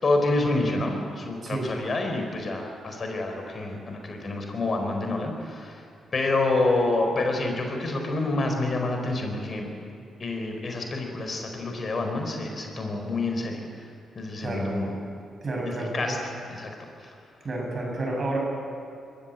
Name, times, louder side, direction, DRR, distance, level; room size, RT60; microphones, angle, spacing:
voice 1, 0.0-5.8 6.1-9.7 10.2-13.6 14.1-15.0 15.6-16.7, left 2 dB, 45° left, 3 dB, 4.6 m, -28 dB
voice 2, 15.4-16.1 17.4-18.4, right 2 dB, 45° right, 0 dB, 7.5 m, -30 dB
24.0 x 14.0 x 9.1 m, 2.5 s
hypercardioid pair, 45°, 0 cm